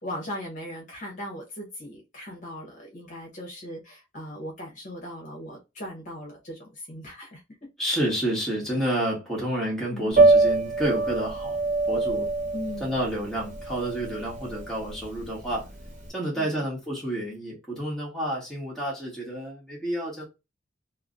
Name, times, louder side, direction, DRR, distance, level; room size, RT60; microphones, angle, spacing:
voice 1, 0.0-7.7 9.9-10.1 12.5-13.0 16.4-16.6, left 1 dB, 40° left, 0.9 m, -38 dB
voice 2, 7.8-11.6 11.9-12.3 12.8-15.7 16.1-20.2, right 1 dB, ahead, 1.2 m, -29 dB
Piano, 10.1-16.0, right 3 dB, 40° right, 1.0 m, -24 dB
3.1 x 2.0 x 2.4 m
head